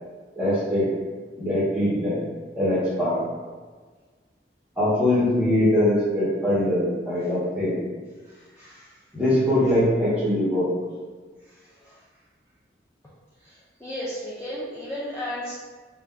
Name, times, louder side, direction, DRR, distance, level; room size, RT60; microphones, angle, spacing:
voice 1, 0.4-1.0 1.4-2.2 2.6-3.3 4.8-7.8 9.1-10.7, left 1 dB, 5° right, -9 dB, 1.0 m, -22 dB
voice 2, 8.2-8.9 11.5-12.0 13.4-15.5, left 1 dB, 15° left, -10 dB, 0.4 m, -35 dB
2.5 x 2.3 x 3.4 m, 1.4 s
head